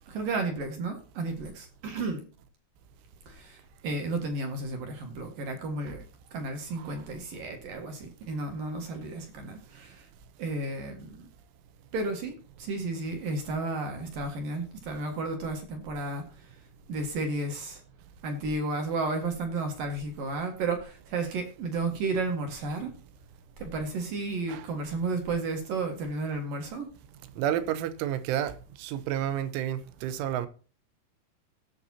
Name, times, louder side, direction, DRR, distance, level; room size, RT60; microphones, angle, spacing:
voice 1, 0.1-2.3 3.3-6.0 6.3-10.1 10.4-11.3 11.9-16.6 16.9-17.8 18.2-22.9 23.6-26.9, right 3 dB, 55° right, 2.8 m, -33 dB
voice 2, 27.4-30.5, right 11 dB, 85° right, 3.3 m, -31 dB
18.0 x 6.9 x 2.8 m
omnidirectional pair, 5.6 m